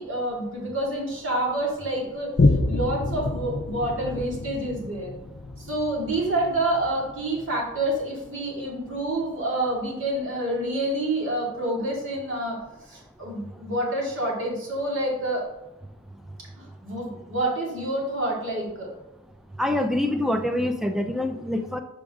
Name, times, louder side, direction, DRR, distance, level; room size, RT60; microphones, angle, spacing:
voice 1, 0.0-2.3 2.7-5.1 5.6-12.6 12.9-15.5 16.6-18.9, right 1 dB, 65° right, -3 dB, 2.4 m, -28 dB
Boom, 2.4-9.3 9.8-9.9, left 2 dB, 50° left, 0.5 m, -28 dB
voice 2, 19.6-21.8, left 1 dB, ahead, 6 dB, 0.5 m, -25 dB
6.9 x 5.2 x 3.6 m, 0.95 s
head